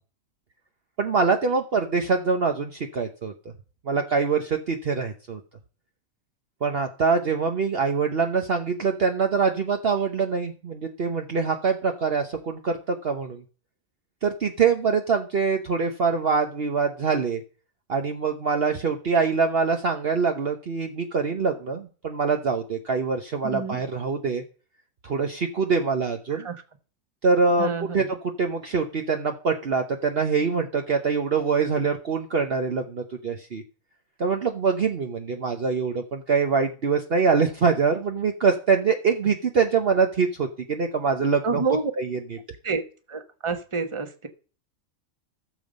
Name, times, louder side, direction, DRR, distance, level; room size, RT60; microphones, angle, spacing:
voice 1, 1.0-3.3 3.9-5.4 6.6-13.4 14.2-17.4 17.9-24.4 25.0-26.5 27.2-33.6 34.2-41.6 42.0-42.4, right 5 dB, 50° right, 4 dB, 1.1 m, -24 dB
voice 2, 23.4-23.8 26.3-26.6 27.6-28.0 41.4-41.9 42.6-42.8 43.1-44.3, right 4 dB, 25° right, 7 dB, 1.2 m, -28 dB
15.5 x 7.1 x 5.3 m, 0.38 s
omnidirectional pair, 1.4 m